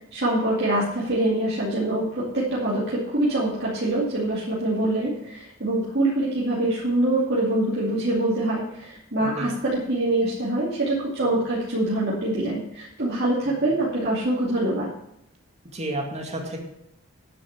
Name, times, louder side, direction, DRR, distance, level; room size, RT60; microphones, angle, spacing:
voice 1, 0.1-14.9, right 1 dB, 50° right, -7 dB, 2.5 m, -24 dB
voice 2, 9.2-9.5 13.4-13.8 15.7-16.6, right 1 dB, 30° right, 1 dB, 2.2 m, -32 dB
9.7 x 7.0 x 7.4 m, 0.80 s
head